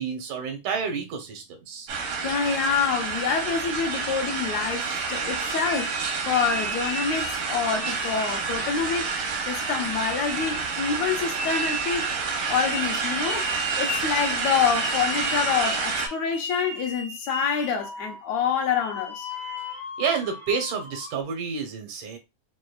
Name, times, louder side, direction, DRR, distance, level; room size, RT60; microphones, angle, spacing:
voice 1, 0.0-1.9 19.3-22.2, right 6 dB, 90° right, 2.4 m, -30 dB
sound 1, 1.9-16.1, right 4 dB, 70° right, 1.2 m, -29 dB
voice 2, 2.2-5.9 6.3-9.1 9.5-12.1 12.5-13.5 13.7-19.3, left 6 dB, 75° left, 1.8 m, -27 dB
sound 2, 4.8-7.5 7.8-21.2, left 1 dB, 55° left, 0.8 m, -37 dB
6.3 x 2.3 x 2.3 m
omnidirectional pair, 3.4 m